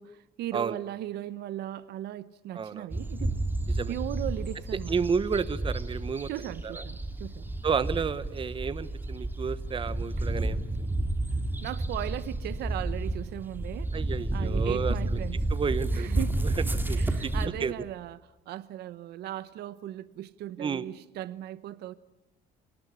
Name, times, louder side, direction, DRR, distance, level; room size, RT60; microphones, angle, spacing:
voice 1, 0.0-3.3 3.9-5.0 6.3-7.5 10.2-10.3 11.6-13.9 14.3-15.5 15.9-16.5 17.0-21.9, right 13 dB, 75° right, 1.0 m, -37 dB
voice 2, 2.5-2.9 3.8-3.9 4.9-6.3 6.6-6.8 7.6-10.9 13.9-15.2 15.5-16.1 16.4-17.3 17.6-17.7 20.6-20.9, right 6 dB, 30° right, 1.1 m, -31 dB
sound 1, 2.9-17.5, right 2 dB, 10° right, 2.5 m, -31 dB
28.0 x 19.0 x 9.9 m
cardioid pair, 110°, 17 cm